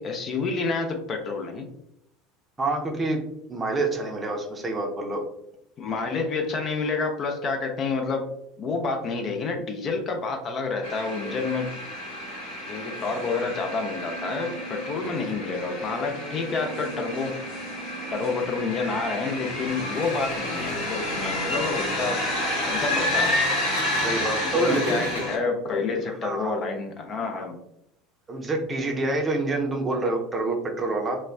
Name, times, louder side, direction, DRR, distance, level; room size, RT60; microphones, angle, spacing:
voice 1, 0.0-1.7 5.8-8.3 8.6-11.7 12.7-17.7 18.1-22.2 22.6-23.3 24.1-27.6, left 4 dB, 40° left, 3 dB, 0.5 m, -29 dB
voice 2, 2.6-3.2 3.5-5.2 24.0-25.0 26.2-26.6 28.3-31.2, right 2 dB, 25° right, 2 dB, 0.6 m, -27 dB
sound 1, 10.8-25.4, left 1 dB, 65° left, 0.9 m, -30 dB
sound 2, 19.9-25.3, right 2 dB, 90° right, 0.4 m, -42 dB
3.2 x 2.1 x 2.4 m, 0.78 s
figure-of-eight pair, 70°, 0 cm